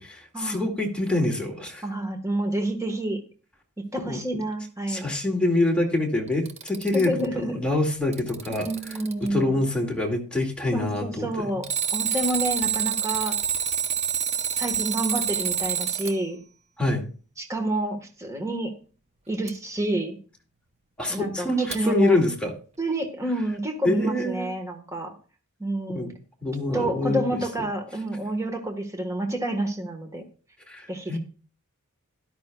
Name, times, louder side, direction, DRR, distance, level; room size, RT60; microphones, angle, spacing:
voice 1, 0.0-1.8 4.1-4.2 4.9-8.7 9.3-11.3 16.8-17.1 21.0-22.5 23.8-24.5 25.9-26.1 26.4-27.4 30.7-31.2, left 2 dB, 5° left, -1 dB, 2.1 m, -25 dB
voice 2, 1.8-3.2 3.8-5.0 6.9-7.6 8.5-9.6 10.7-11.7 11.9-13.4 14.5-16.4 17.4-18.7 19.3-20.2 21.1-22.1 22.8-25.1 25.6-26.1 26.7-30.2 30.9-31.2, right 1 dB, 15° right, 4 dB, 1.4 m, -28 dB
Alarm, 6.3-7.3 7.9-9.3 11.6-16.2 19.5-19.6 21.7-21.8, right 8 dB, 30° right, 0.8 m, -27 dB
13.0 x 11.5 x 2.3 m, 0.38 s
head